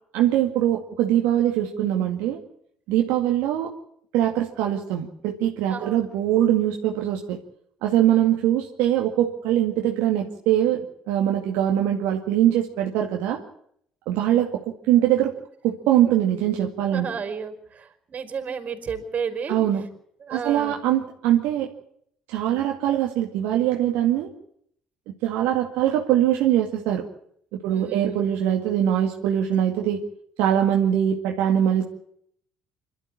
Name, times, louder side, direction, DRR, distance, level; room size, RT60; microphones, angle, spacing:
voice 1, 0.1-2.4 2.9-3.7 4.1-7.4 7.8-13.4 14.1-14.5 14.9-15.3 15.6-17.1 19.5-19.8 20.3-21.7 22.3-24.3 25.2-27.0 27.6-30.0 30.4-31.8, right 11 dB, 70° right, 1 dB, 2.1 m, -22 dB
voice 2, 5.7-6.1 8.1-8.4 16.9-19.6 20.3-20.8 27.7-28.2, right 6 dB, 45° right, 7 dB, 5.1 m, -32 dB
26.5 x 13.0 x 8.7 m, 0.68 s
hypercardioid pair, 60°, 3 cm